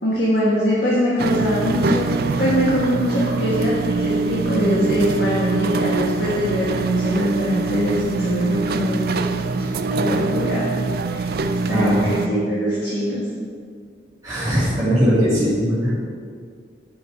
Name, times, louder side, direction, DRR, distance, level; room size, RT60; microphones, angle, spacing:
voice 1, 0.0-2.1 2.4-10.8 11.1-13.3, equal, 60° left, -7 dB, 1.5 m, -22 dB
sound 1, 1.2-12.3, right 3 dB, 55° right, 0.4 m, -24 dB
voice 2, 11.6-12.1 14.2-15.9, equal, 20° right, -13 dB, 2.4 m, -20 dB
9.8 x 5.4 x 4.7 m, 2.1 s
head